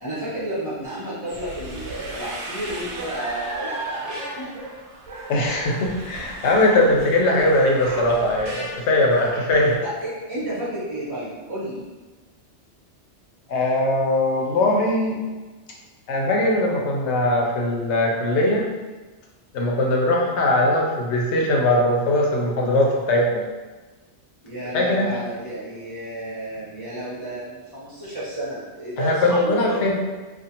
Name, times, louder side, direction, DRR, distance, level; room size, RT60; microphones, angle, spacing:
voice 1, 0.0-4.5 9.8-11.8 24.4-29.8, right 1 dB, 25° right, -10 dB, 0.7 m, -31 dB
sound 1, 1.3-9.7, right 2 dB, 85° right, 0.9 m, -35 dB
voice 2, 5.3-9.8 13.5-15.2 16.1-18.7 19.5-23.4 24.7-25.2 29.0-29.9, left 1 dB, 75° left, -1 dB, 0.9 m, -20 dB
2.6 x 2.4 x 2.8 m, 1.3 s
omnidirectional pair, 1.2 m